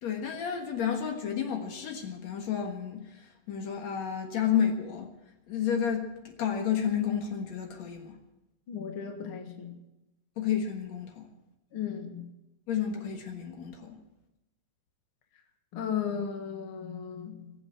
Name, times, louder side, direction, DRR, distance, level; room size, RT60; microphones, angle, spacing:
voice 1, 0.0-5.1 5.5-8.2 10.4-11.3 12.7-14.0, left 8 dB, 65° left, 3 dB, 2.7 m, -31 dB
voice 2, 8.7-9.8 11.7-12.3 15.7-17.5, left 7 dB, 50° left, 3 dB, 2.4 m, -35 dB
20.5 x 8.0 x 7.8 m, 0.94 s
omnidirectional pair, 3.4 m